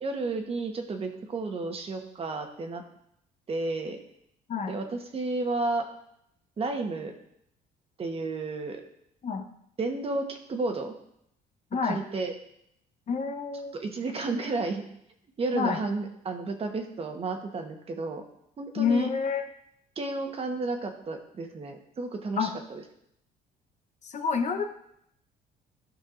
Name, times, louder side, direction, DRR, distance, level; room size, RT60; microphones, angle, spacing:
voice 1, 0.0-2.8 3.5-4.0 4.7-5.9 6.6-7.1 8.0-8.8 9.8-10.9 11.8-12.3 13.8-14.8 15.4-18.2 18.6-19.1 20.0-22.8, right 3 dB, 35° right, 4 dB, 1.1 m, -32 dB
voice 2, 13.1-13.8 15.5-15.8 18.8-19.4 22.4-22.5 24.0-24.6, left 5 dB, 45° left, 6 dB, 0.8 m, -28 dB
12.5 x 5.5 x 2.5 m, 0.74 s
cardioid pair, 110°, 17 cm